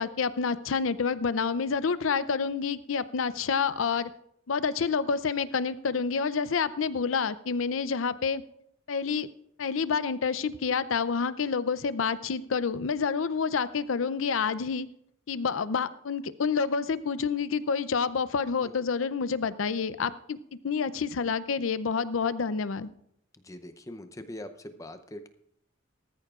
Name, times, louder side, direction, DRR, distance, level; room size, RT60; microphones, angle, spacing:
voice 1, 0.0-4.1 4.5-8.4 8.9-9.3 9.6-14.9 15.3-20.4 20.6-22.9, left 5 dB, 90° left, 15 dB, 0.6 m, -28 dB
voice 2, 23.4-25.3, left 1 dB, 15° left, 9 dB, 0.6 m, -42 dB
19.0 x 13.5 x 2.4 m, 0.73 s
head